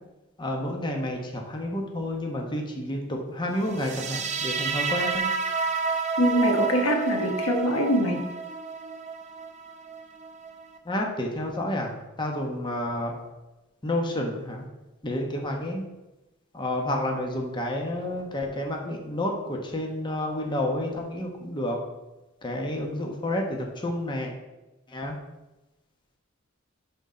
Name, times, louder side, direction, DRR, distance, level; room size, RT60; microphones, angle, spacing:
voice 1, 0.4-5.3 10.8-13.2 13.8-14.6 15.0-15.8 16.5-21.8 22.4-24.3 24.9-25.2, left 1 dB, 20° left, 1 dB, 1.0 m, -30 dB
sound 1, 3.7-10.8, right 5 dB, 35° right, 0.6 m, -30 dB
voice 2, 6.2-8.2, equal, 90° left, 2 dB, 1.2 m, -23 dB
11.0 x 3.8 x 4.3 m, 1.0 s
head